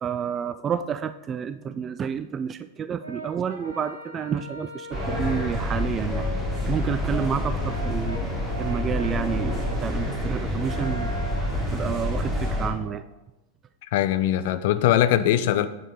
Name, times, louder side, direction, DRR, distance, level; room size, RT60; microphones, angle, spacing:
voice 1, 0.0-6.3 6.7-8.3 8.6-11.1 11.7-13.0, right 7 dB, 25° right, 12 dB, 0.3 m, -29 dB
Brass instrument, 3.0-5.5 6.1-13.1, right 1 dB, 75° right, 1.5 m, -41 dB
sound 1, 4.9-12.7, left 1 dB, 5° right, 2.9 m, -28 dB
sound 2, 5.1-11.0, left 5 dB, 10° left, 0.6 m, -41 dB
voice 2, 13.9-15.7, left 12 dB, 50° left, 12 dB, 0.5 m, -21 dB
9.0 x 6.3 x 4.1 m, 0.95 s
figure-of-eight pair, 90°, 0 cm